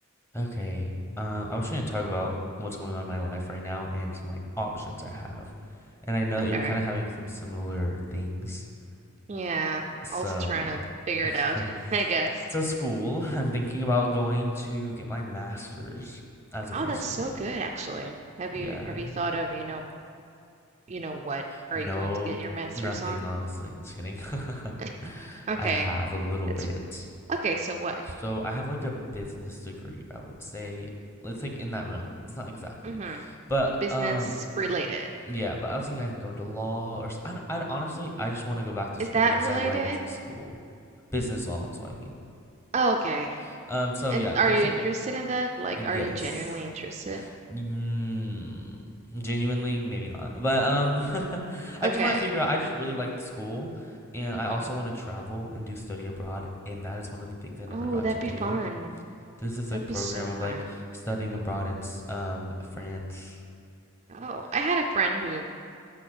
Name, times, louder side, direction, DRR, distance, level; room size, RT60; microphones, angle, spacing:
voice 1, 0.3-2.3 2.6-5.5 6.0-8.6 10.0-10.7 11.2-11.7 12.5-16.2 16.5-17.4 18.5-19.2 21.5-22.3 22.7-24.7 25.0-27.0 28.2-30.9 31.2-34.3 35.3-40.6 41.1-42.1 43.4-44.7 45.8-46.2 46.5-46.6 47.1-48.7 49.1-58.6 59.4-63.4 64.4-64.5, equal, 10° left, 0 dB, 0.8 m, -32 dB
voice 2, 9.3-10.8 11.1-12.3 16.7-19.8 20.9-21.4 21.7-23.2 24.8-24.9 25.5-25.9 27.3-27.9 32.8-33.2 33.8-34.2 34.6-35.1 39.0-40.0 42.7-43.4 44.1-47.2 51.8-52.2 54.3-54.7 57.7-59.0 59.9-60.6 64.1-65.4, right 3 dB, 30° right, 2 dB, 0.4 m, -29 dB
6.5 x 6.1 x 6.4 m, 2.5 s
head